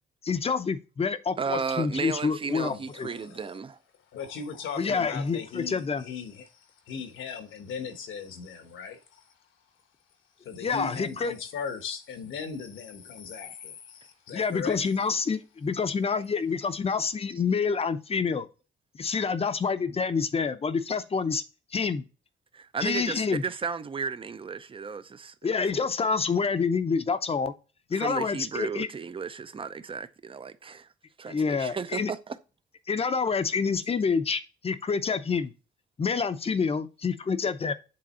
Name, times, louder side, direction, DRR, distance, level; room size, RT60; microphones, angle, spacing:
voice 1, 0.2-2.7 3.0-3.1 4.8-6.0 10.6-11.3 14.3-18.5 18.9-21.4 21.7-22.0 22.8-23.4 25.4-27.5 27.9-28.9 31.3-32.1 32.9-35.5 36.0-37.7, left 5 dB, 30° left, 0.7 m, -27 dB
voice 2, 1.4-3.8 22.5-25.9 27.9-30.9 31.2-32.4 33.9-34.0, right 5 dB, 25° right, 0.6 m, -34 dB
voice 3, 2.7-3.6 4.1-9.3 10.4-14.8, left 6 dB, 75° left, 1.2 m, -38 dB
7.6 x 3.5 x 4.2 m
cardioid pair, 90°, 20 cm